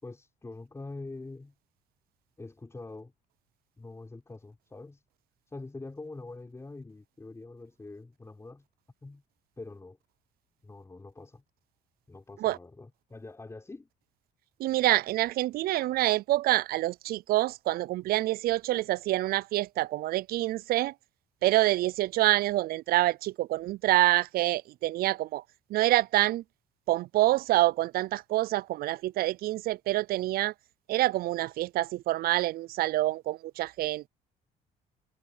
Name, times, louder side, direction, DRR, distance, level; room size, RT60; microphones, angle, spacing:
voice 1, 0.0-1.5 2.4-3.1 3.8-5.0 5.5-8.7 9.0-9.2 9.6-10.0 10.6-11.4 12.1-13.9, left 3 dB, 15° left, 5.5 m, -44 dB
voice 2, 14.6-20.9 21.4-25.4 25.7-26.4 26.9-30.5 30.9-34.1, right 16 dB, 65° right, 0.4 m, -26 dB
cardioid pair, 110°, 17 cm